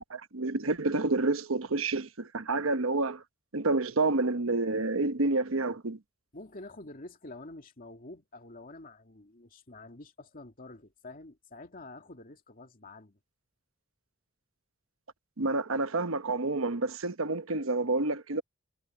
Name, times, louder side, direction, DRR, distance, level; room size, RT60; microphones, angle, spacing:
voice 1, 0.0-3.2 3.5-6.0 15.4-18.4, right 3 dB, 85° right, 1.1 m, -29 dB
voice 2, 6.3-13.2, left 2 dB, 45° left, 2.5 m, -48 dB
head